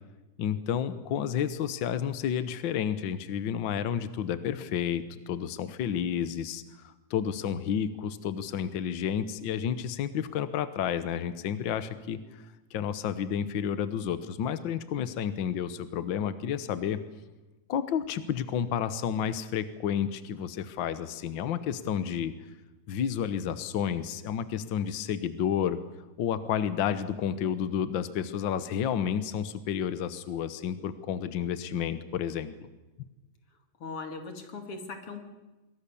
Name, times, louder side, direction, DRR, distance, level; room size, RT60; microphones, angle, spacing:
voice 1, 0.4-12.4 12.7-17.0 17.7-22.3 22.9-25.8 26.2-32.5, left 8 dB, 75° left, 12 dB, 1.1 m, -31 dB
voice 2, 33.8-35.2, left 4 dB, 45° left, 5 dB, 3.4 m, -39 dB
27.0 x 22.0 x 7.0 m, 1.1 s
omnidirectional pair, 3.7 m